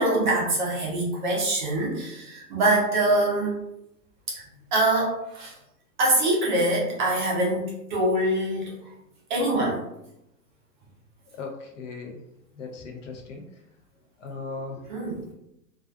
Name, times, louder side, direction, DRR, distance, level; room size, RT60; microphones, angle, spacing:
voice 1, 0.0-3.5 4.3-4.4 4.7-5.5 6.0-8.8 9.3-9.8 14.9-15.2, right 1 dB, 30° right, -4 dB, 0.5 m, -24 dB
voice 2, 11.3-12.2 12.6-13.5 14.2-14.8, left 4 dB, 50° left, 2 dB, 0.5 m, -37 dB
2.4 x 2.3 x 2.3 m, 0.84 s
hypercardioid pair, 140°, 49 cm